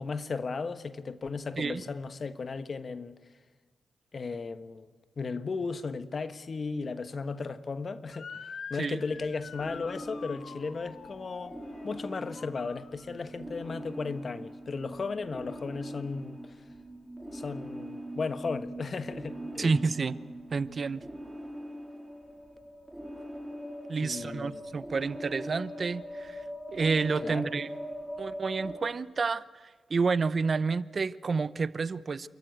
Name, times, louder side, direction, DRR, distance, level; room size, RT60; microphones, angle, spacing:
voice 1, 0.0-3.2 4.1-4.9 5.2-11.6 11.8-16.5 17.3-19.8 24.0-24.6 27.2-27.5, left 4 dB, 50° left, 1.2 m, -35 dB
Motor vehicle (road) / Siren, 8.1-13.4, left 6 dB, 65° left, 1.3 m, -46 dB
sound 1, 9.1-28.8, equal, 5° right, 4.2 m, -42 dB
voice 2, 19.6-20.1 20.5-21.0 23.9-26.4 26.7-27.7 28.2-29.4 29.9-32.3, right 4 dB, 50° right, 0.8 m, -29 dB
28.5 x 14.0 x 9.2 m
cardioid pair, 60°, 0 cm